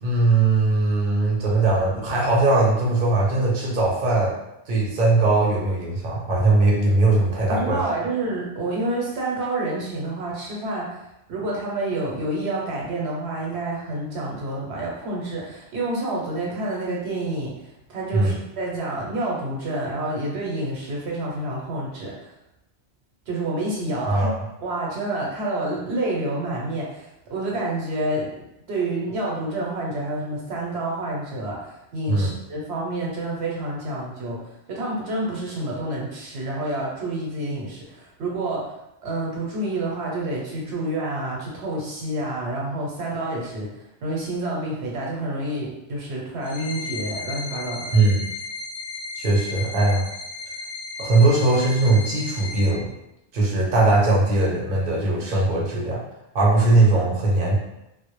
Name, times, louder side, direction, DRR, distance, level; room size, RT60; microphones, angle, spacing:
voice 1, 0.0-4.3 4.7-7.8 18.1-18.3 24.1-24.3 32.1-32.3 47.9-48.2 49.2-50.0 51.0-52.9 53.3-56.0 56.3-57.6, right 2 dB, 50° right, -4 dB, 0.7 m, -20 dB
voice 2, 7.4-22.3 23.3-24.3 24.6-28.4 28.7-47.9, right 2 dB, 75° right, -3 dB, 0.9 m, -28 dB
sound 1, 46.4-52.7, left 3 dB, 60° left, 0.5 m, -35 dB
2.1 x 2.0 x 2.9 m, 0.87 s
omnidirectional pair, 1.1 m